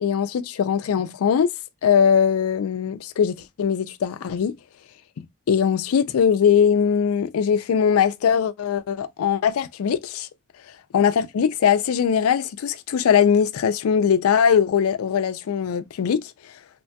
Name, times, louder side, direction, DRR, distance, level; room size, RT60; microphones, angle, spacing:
voice 1, 0.0-1.5 1.8-4.5 5.5-10.3 10.9-16.3, left 7 dB, 80° left, 0.4 m, -21 dB
2.9 x 2.2 x 2.7 m
head